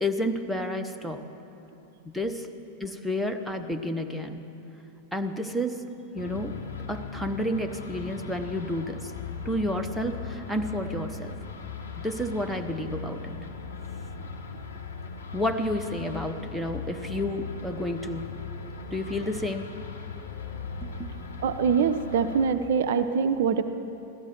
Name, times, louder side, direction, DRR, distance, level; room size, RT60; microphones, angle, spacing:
voice 1, 0.0-1.3 2.0-2.5 2.8-4.4 5.1-6.6 6.9-9.1 9.4-11.3 12.0-13.3 15.3-18.3 18.9-19.7 20.8-21.1, left 1 dB, ahead, 3 dB, 0.8 m, -30 dB
sound 1, 6.2-22.5, left 5 dB, 75° left, 1.2 m, -39 dB
voice 2, 21.4-23.6, right 6 dB, 55° right, 9 dB, 0.5 m, -24 dB
17.5 x 13.5 x 4.5 m, 2.9 s
figure-of-eight pair, 90°, 0 cm